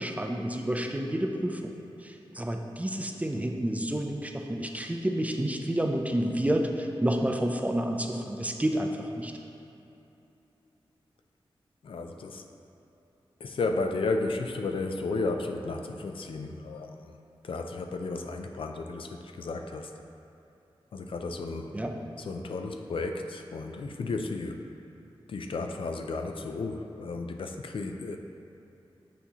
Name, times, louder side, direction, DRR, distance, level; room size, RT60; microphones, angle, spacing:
voice 1, 0.0-1.7 2.0-9.3 21.7-21.9, right 1 dB, 15° right, 3 dB, 0.4 m, -29 dB
voice 2, 11.8-12.4 13.4-17.2 17.4-19.9 20.9-21.8 22.2-24.7 25.3-28.2, left 3 dB, 65° left, 5 dB, 0.4 m, -33 dB
8.2 x 4.1 x 2.9 m, 2.9 s
wide cardioid pair, 75°, 10 cm